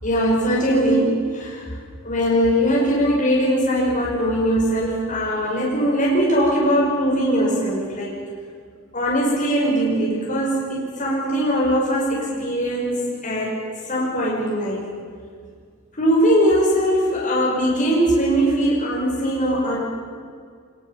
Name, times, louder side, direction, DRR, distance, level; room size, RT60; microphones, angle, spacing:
voice 1, 0.0-1.7 2.0-8.1 8.9-13.6 13.9-14.8 15.9-19.8, equal, 40° left, -5 dB, 5.5 m, -20 dB
24.0 x 22.0 x 7.2 m, 2.1 s
head